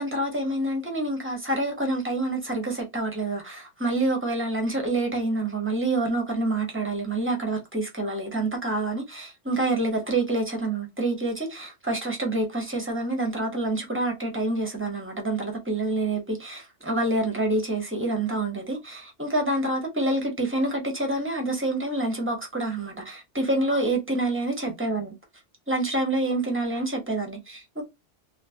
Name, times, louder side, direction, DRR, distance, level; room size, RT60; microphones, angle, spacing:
voice 1, 0.0-25.1 25.7-27.8, right 2 dB, 10° right, 0.8 m, -27 dB
3.2 x 2.3 x 2.3 m
omnidirectional pair, 1.2 m